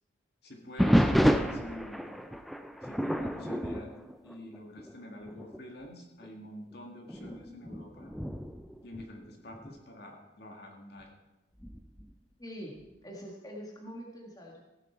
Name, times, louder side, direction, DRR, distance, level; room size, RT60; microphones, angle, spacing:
voice 1, 0.4-2.0 2.8-4.0 4.2-8.1 8.8-11.1, left 1 dB, 55° left, 1 dB, 1.9 m, -47 dB
sound 1, 0.8-4.9 5.3-5.6 6.2-6.3 7.1-9.8 11.6-12.1, equal, ahead, 0.4 m, -30 dB
voice 2, 12.4-14.6, equal, 20° left, -1 dB, 1.5 m, -44 dB
16.0 x 9.0 x 4.5 m, 1.0 s
head